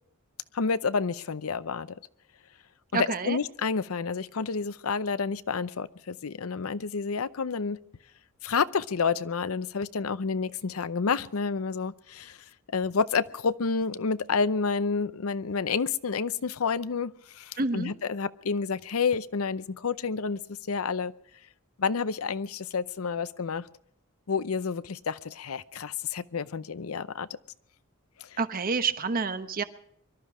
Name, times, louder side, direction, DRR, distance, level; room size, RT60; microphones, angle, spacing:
voice 1, 0.5-2.0 2.9-7.8 8.4-12.4 12.7-20.4 20.7-21.1 21.8-23.7 24.3-27.3 28.2-28.3, left 5 dB, 85° left, 15 dB, 0.6 m, -29 dB
voice 2, 2.9-3.4 17.6-17.9 28.4-29.6, right 4 dB, 45° right, 10 dB, 1.0 m, -28 dB
24.0 x 12.5 x 4.9 m, 0.70 s
head